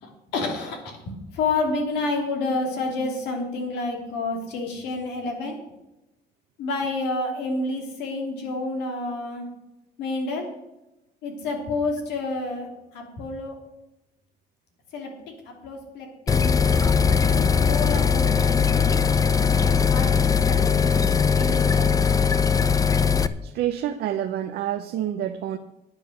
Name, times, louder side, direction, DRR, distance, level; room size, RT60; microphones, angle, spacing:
voice 1, 0.0-5.6 6.6-9.4 10.0-10.5 11.2-12.7 12.9-13.5 14.9-15.1 15.5-16.3 17.2-19.3 19.6-22.1, left 3 dB, 85° left, 2 dB, 3.0 m, -29 dB
sound 1, 16.3-23.3, left 6 dB, 20° left, 0.5 m, -20 dB
voice 2, 23.4-25.6, right 11 dB, 70° right, 7 dB, 0.7 m, -28 dB
9.6 x 8.5 x 6.5 m, 0.94 s
cardioid pair, 110°, 17 cm